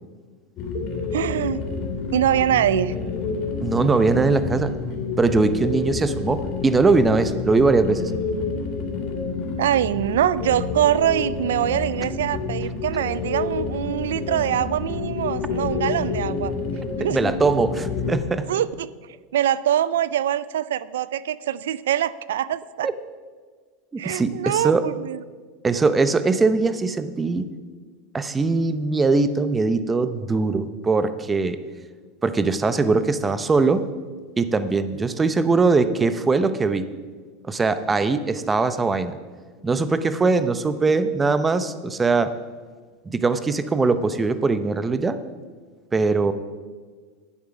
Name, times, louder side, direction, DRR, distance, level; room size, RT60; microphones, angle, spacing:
sound 1, 0.6-18.1, left 4 dB, 45° left, 2.3 m, -28 dB
voice 1, 1.1-1.6 2.1-2.9 9.6-16.5 17.0-17.2 18.5-18.9 19.3-22.9 24.0-25.2, right 11 dB, 90° right, 18 dB, 0.3 m, -23 dB
voice 2, 3.6-4.7 5.2-8.1 17.1-18.5 22.8-22.9 24.0-24.8 25.6-27.5 28.1-31.6 32.2-33.8 34.4-36.9 37.4-39.2 39.6-42.3 43.1-45.2 45.9-46.3, right 3 dB, 15° right, 12 dB, 0.7 m, -21 dB
11.0 x 8.7 x 6.0 m, 1.5 s
supercardioid pair, 130°, 0 cm